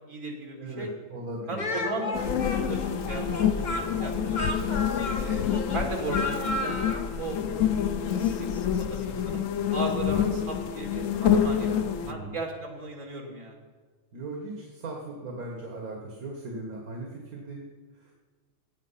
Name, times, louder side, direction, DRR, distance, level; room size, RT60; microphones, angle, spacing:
voice 1, 0.0-0.9 1.5-4.6 5.1-6.8 7.2-7.4 8.0-8.5 8.8-9.4 9.7-11.7 12.1-13.6, right 2 dB, 65° right, 1 dB, 3.0 m, -36 dB
voice 2, 0.6-1.6 12.0-12.4 14.1-17.6 18.0-18.1, right 2 dB, 80° right, 0 dB, 2.1 m, -38 dB
Speech, 1.6-7.1, left 2 dB, 35° left, 1.4 m, -33 dB
sound 1, 2.1-12.1, left 8 dB, 65° left, 1.1 m, -27 dB
16.5 x 9.0 x 5.7 m, 1.5 s
omnidirectional pair, 1.5 m